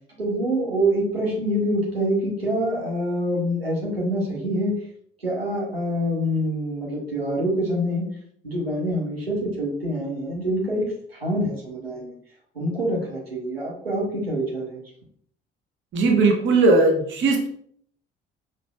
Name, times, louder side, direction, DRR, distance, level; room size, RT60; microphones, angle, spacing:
voice 1, 0.2-4.7 5.2-8.0 8.4-12.1 12.5-14.8, equal, 90° right, -4 dB, 0.8 m, -25 dB
voice 2, 15.9-17.5, right 3 dB, 40° right, 2 dB, 1.0 m, -18 dB
5.1 x 2.7 x 2.3 m, 0.63 s
figure-of-eight pair, 50°, 29 cm